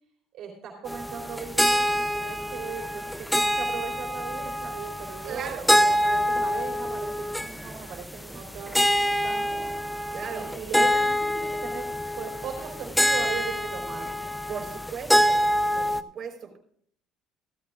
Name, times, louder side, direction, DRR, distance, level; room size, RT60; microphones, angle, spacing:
voice 1, 0.3-9.6 10.3-11.9 12.2-14.0, right 7 dB, 55° right, 0 dB, 3.3 m, -38 dB
Tuning Swarmandal Indian Harp, 0.9-16.0, equal, ahead, 0.5 m, -26 dB
voice 2, 5.2-5.7 10.1-10.5 14.5-15.5 15.7-16.6, right 6 dB, 40° right, 1 dB, 4.2 m, -37 dB
16.5 x 14.5 x 2.5 m, 0.63 s
cardioid pair, 155°, 0 cm